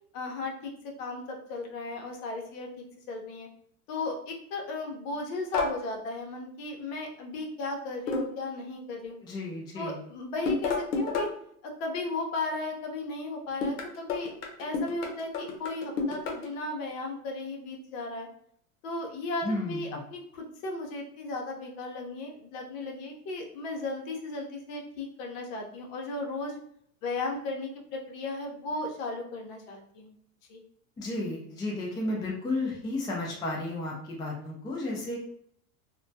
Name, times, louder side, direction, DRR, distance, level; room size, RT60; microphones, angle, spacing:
voice 1, 0.1-2.7 3.1-3.5 3.9-9.2 9.7-11.3 11.6-14.3 14.6-18.3 18.8-26.6 27.0-30.1 30.5-30.6, left 2 dB, 60° left, 1 dB, 0.8 m, -35 dB
sound 1, 5.5-5.8 8.1-8.5 10.5-11.4 13.6-16.5, left 4 dB, 90° left, 0.7 m, -30 dB
voice 2, 9.2-10.0 19.4-20.0 31.0-35.2, left 2 dB, 10° left, -3 dB, 0.4 m, -33 dB
2.2 x 2.2 x 2.6 m, 0.68 s
hypercardioid pair, 100°, 46 cm